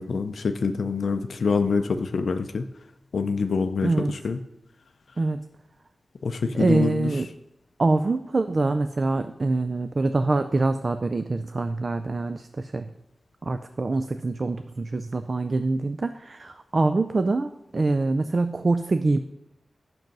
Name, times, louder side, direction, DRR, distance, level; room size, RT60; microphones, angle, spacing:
voice 1, 0.0-2.6 3.1-4.4 6.2-7.1, left 4 dB, 75° left, 7 dB, 0.4 m, -26 dB
voice 2, 3.8-4.1 5.2-5.4 6.5-7.3 7.8-12.9 13.4-19.2, right 3 dB, 40° right, 9 dB, 0.3 m, -25 dB
7.7 x 6.1 x 5.3 m, 0.86 s
wide cardioid pair, 135°, 0 cm